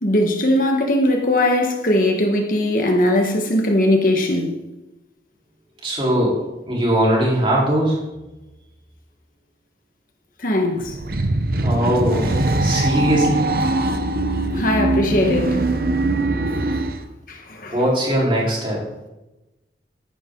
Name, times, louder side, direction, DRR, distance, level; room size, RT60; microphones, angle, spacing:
voice 1, 0.0-4.6 10.4-11.0 14.5-15.6 17.3-17.7, left 1 dB, 50° left, 1.7 m, -19 dB
voice 2, 5.8-6.4 6.7-8.0 11.6-13.5 17.7-18.8, right 1 dB, 30° right, 4.6 m, -20 dB
sound 1, 10.8-17.0, right 2 dB, 55° right, 1.0 m, -22 dB
14.0 x 11.0 x 4.0 m
head